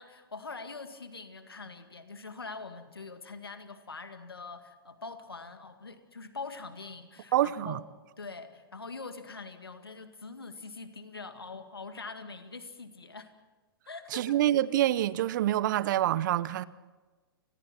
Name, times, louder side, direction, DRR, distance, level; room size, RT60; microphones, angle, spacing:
voice 1, 0.0-7.8 8.2-13.3 13.9-14.4, left 4 dB, 90° left, 2.1 m, -43 dB
voice 2, 7.3-7.8 14.1-16.6, right 13 dB, 55° right, 0.8 m, -26 dB
29.5 x 21.5 x 4.5 m
hypercardioid pair, 115°, 12 cm